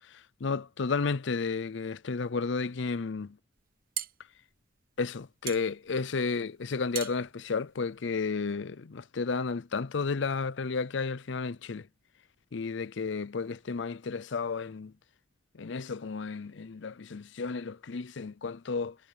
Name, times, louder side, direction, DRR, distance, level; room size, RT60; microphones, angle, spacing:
voice 1, 0.4-3.4 5.0-11.9 12.5-14.9 15.5-19.0, left 4 dB, 65° left, 0.6 m, -32 dB
sound 1, 3.6-8.5, right 11 dB, 45° right, 1.4 m, -42 dB
head